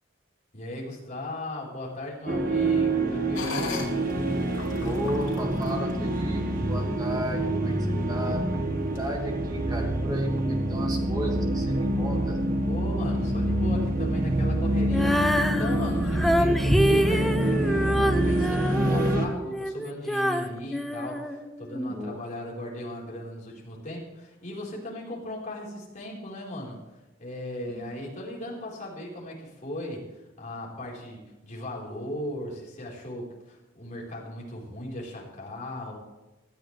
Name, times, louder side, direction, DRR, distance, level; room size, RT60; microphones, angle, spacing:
voice 1, 0.5-4.0 12.6-26.8 27.2-30.1 30.4-36.0, left 1 dB, 40° left, -4 dB, 4.6 m, -37 dB
sound 1, 2.3-19.3, right 1 dB, 45° right, 1.7 m, -26 dB
sound 2, 3.3-6.8 7.3-7.4 7.9-8.3 8.9-9.0, left 4 dB, 70° left, 3.3 m, -39 dB
voice 2, 4.8-12.4 21.9-22.2 27.7-28.0, equal, 20° right, 0 dB, 2.4 m, -35 dB
Female singing, 14.9-21.9, equal, ahead, 0.7 m, -26 dB
19.0 x 13.0 x 3.4 m, 1.1 s
head